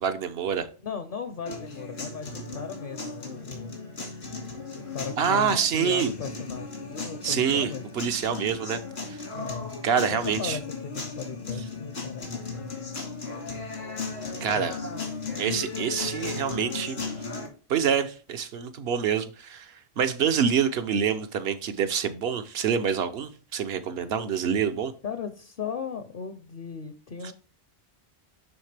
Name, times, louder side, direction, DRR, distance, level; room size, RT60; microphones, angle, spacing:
voice 1, 0.0-0.7 5.2-6.1 7.2-8.8 9.1-9.2 9.8-10.6 14.4-14.8 15.4-17.0 17.7-24.9 27.2-27.3, right 7 dB, 70° right, 0.9 m, -26 dB
voice 2, 0.8-3.7 4.7-7.8 9.3-9.7 10.1-12.8 14.3-15.0 25.0-27.3, left 6 dB, 60° left, 0.8 m, -37 dB
sound 1, 1.5-17.5, left 3 dB, 85° left, 2.2 m, -36 dB
10.5 x 3.6 x 3.3 m
omnidirectional pair, 1.1 m